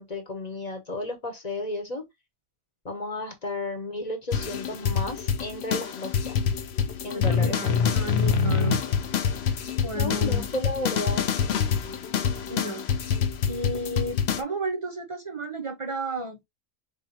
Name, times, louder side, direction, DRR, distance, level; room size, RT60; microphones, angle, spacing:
voice 1, 0.0-2.0 2.8-6.3 7.0-8.0 10.0-11.3, left 2 dB, 30° left, 1.1 m, -33 dB
sound 1, 4.3-14.4, left 7 dB, 60° left, 0.8 m, -26 dB
voice 2, 7.1-8.8 9.8-10.5 12.5-12.9 13.5-16.4, right 1 dB, 35° right, 0.6 m, -33 dB
4.2 x 3.7 x 2.9 m
omnidirectional pair, 1.4 m